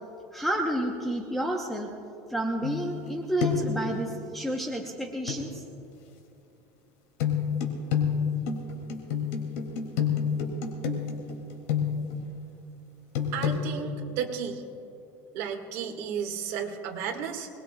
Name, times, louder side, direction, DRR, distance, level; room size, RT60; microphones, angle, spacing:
voice 1, 0.3-1.9 2.3-5.6, right 1 dB, 5° left, 0 dB, 0.9 m, -30 dB
sound 1, 2.6-3.1 3.4-3.8 5.3-5.4 7.2-12.2 13.1-13.6, left 7 dB, 80° left, 2.7 m, -28 dB
voice 2, 13.3-14.6 15.3-17.5, right 7 dB, 55° right, 3 dB, 1.9 m, -33 dB
26.0 x 20.5 x 2.4 m, 2.7 s
cardioid pair, 160°, 7 cm